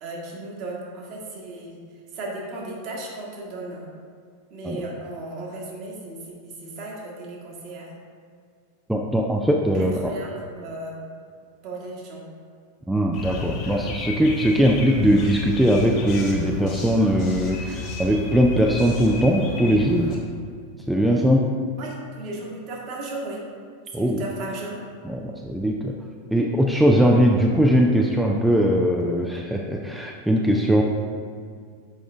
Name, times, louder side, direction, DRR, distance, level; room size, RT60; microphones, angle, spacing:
voice 1, 0.0-1.8 2.1-3.9 4.5-6.1 6.4-7.9 10.0-11.0 11.6-12.2 21.8-23.4 24.0-24.7, right 2 dB, 40° right, -3 dB, 1.5 m, -35 dB
voice 2, 8.9-10.1 12.9-20.2 20.9-21.5 23.9-24.2 25.0-25.9 26.3-30.8, equal, 5° right, 0 dB, 0.4 m, -20 dB
sound 1, 13.1-20.2, left 2 dB, 40° left, 1.2 m, -33 dB
7.1 x 5.0 x 3.4 m, 2.1 s
figure-of-eight pair, 90°, 0 cm